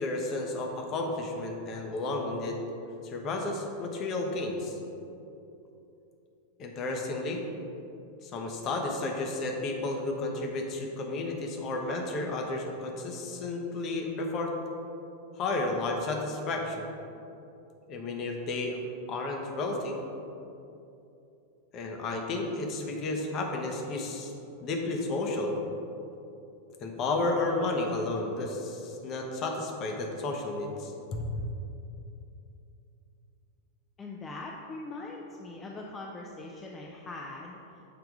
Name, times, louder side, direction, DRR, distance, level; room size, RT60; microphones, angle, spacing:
voice 1, 0.0-2.6 3.0-4.8 6.6-7.4 8.2-14.5 15.3-16.9 17.9-18.8 19.1-20.0 21.7-24.3 24.6-25.6 26.8-31.3, left 2 dB, 35° left, 2 dB, 0.8 m, -32 dB
voice 2, 34.0-37.6, left 2 dB, 20° left, -1 dB, 0.5 m, -41 dB
6.7 x 3.4 x 4.7 m, 2.8 s
figure-of-eight pair, 90°, 0 cm